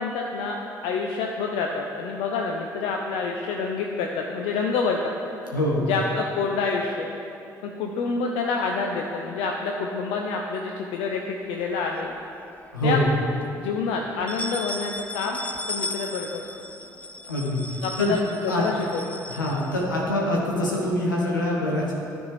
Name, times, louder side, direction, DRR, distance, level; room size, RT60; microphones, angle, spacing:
voice 1, 0.0-5.1 5.9-7.1 7.6-12.1 12.8-13.0 13.5-15.4 15.7-16.4 17.8-18.3 18.5-19.2, left 4 dB, 70° left, 1 dB, 0.5 m, -27 dB
voice 2, 5.5-5.9 12.7-13.1 17.3-17.6 18.0-18.2 18.5-18.7 19.3-21.9, left 1 dB, 90° left, -3 dB, 1.1 m, -24 dB
sound 1, 11.6-12.5 12.9-13.0 13.4-13.5 14.1-20.3, left 2 dB, 15° left, 0.6 m, -36 dB
12.5 x 4.3 x 3.3 m, 2.7 s
figure-of-eight pair, 45°, 10 cm